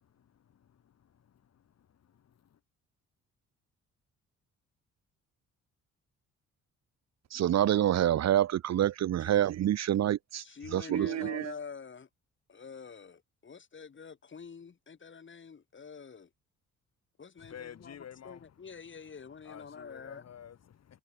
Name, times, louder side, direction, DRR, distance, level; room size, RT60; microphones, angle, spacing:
voice 1, 0.5-1.3 2.1-2.6 17.4-18.4 19.4-21.0, left 9 dB, 55° left, 3.7 m, -50 dB
voice 2, 7.3-10.4 10.7-11.5, right 11 dB, 60° right, 1.0 m, -27 dB
voice 3, 10.4-12.1 12.5-16.3 17.2-20.3, left 6 dB, 40° left, 7.2 m, -47 dB
cardioid pair, 90°, 30 cm